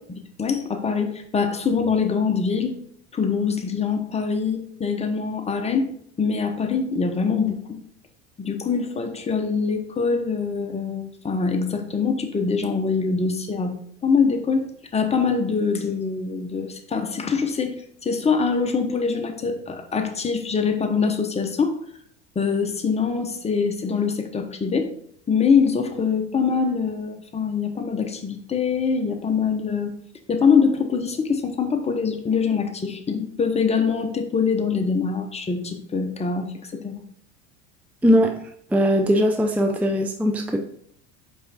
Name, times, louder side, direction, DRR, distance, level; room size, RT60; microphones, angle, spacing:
voice 1, 0.1-2.8 3.1-7.8 8.4-13.7 14.0-17.7 18.0-21.8 22.3-24.9 25.3-29.9 30.3-36.5 36.7-37.0, left 5 dB, 20° left, 5 dB, 1.0 m, -24 dB
voice 2, 38.0-38.4 38.7-40.6, equal, 5° right, 4 dB, 0.5 m, -19 dB
5.4 x 4.6 x 4.3 m, 0.65 s
hypercardioid pair, 80°, 35 cm